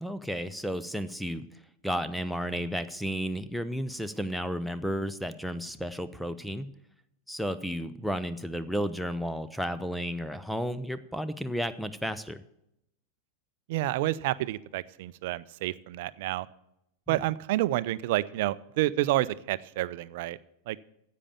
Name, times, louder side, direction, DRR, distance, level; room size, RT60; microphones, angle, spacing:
voice 1, 0.0-6.7 7.3-12.4 17.1-17.2, equal, ahead, 12 dB, 0.5 m, -33 dB
voice 2, 13.7-16.5 17.1-20.4 20.7-20.8, right 16 dB, 50° right, 19 dB, 0.4 m, -29 dB
10.0 x 8.4 x 6.9 m, 0.80 s
figure-of-eight pair, 90°, 0 cm